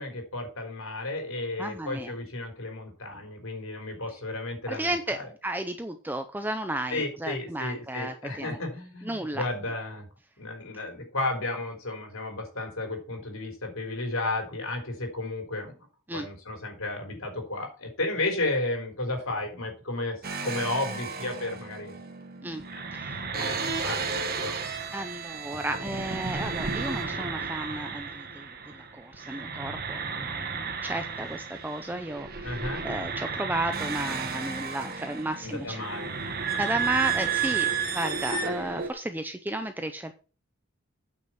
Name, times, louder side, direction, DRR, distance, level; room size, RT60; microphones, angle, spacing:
voice 1, 0.0-5.3 6.9-10.1 10.4-15.7 16.1-21.9 22.7-22.8 23.3-24.6 32.4-32.9 35.4-36.1, left 2 dB, 75° left, 4 dB, 4.0 m, -33 dB
voice 2, 1.6-2.1 4.7-8.6 9.0-9.5 16.1-16.3 22.4-22.6 22.9-23.6 24.9-32.6 32.8-35.8 36.6-40.1, right 1 dB, 10° right, 8 dB, 0.6 m, -33 dB
sound 1, 20.2-28.9 29.1-38.9, right 5 dB, 45° right, 1.4 m, -33 dB
8.9 x 6.2 x 5.8 m, 0.35 s
head